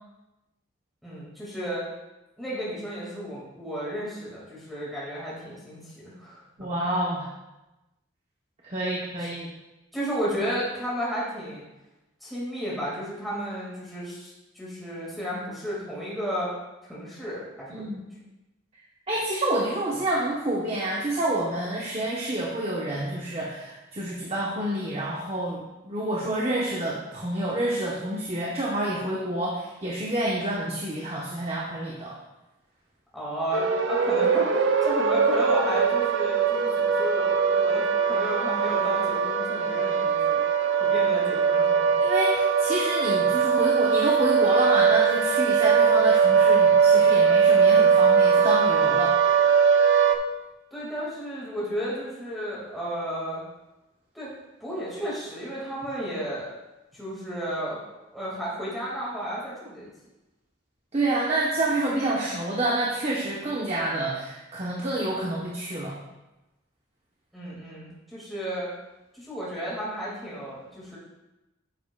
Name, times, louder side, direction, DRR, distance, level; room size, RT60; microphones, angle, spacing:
voice 1, 1.0-1.8 2.4-6.7 9.2-9.3 9.9-11.7 12.2-16.5 16.8-17.9 33.1-40.4 40.8-41.9 50.7-53.4 54.1-54.3 54.6-56.5 56.9-57.8 58.1-59.9 67.3-68.7 69.1-71.0, equal, ahead, -8 dB, 1.9 m, -33 dB
voice 2, 6.6-7.3 8.6-9.5 17.7-18.0 19.1-32.1 42.0-42.3 42.6-49.2 60.9-66.0, right 1 dB, 30° right, -4 dB, 0.9 m, -28 dB
sound 1, 33.5-50.2, right 6 dB, 65° right, 0.6 m, -21 dB
9.6 x 7.9 x 2.3 m, 1.0 s
head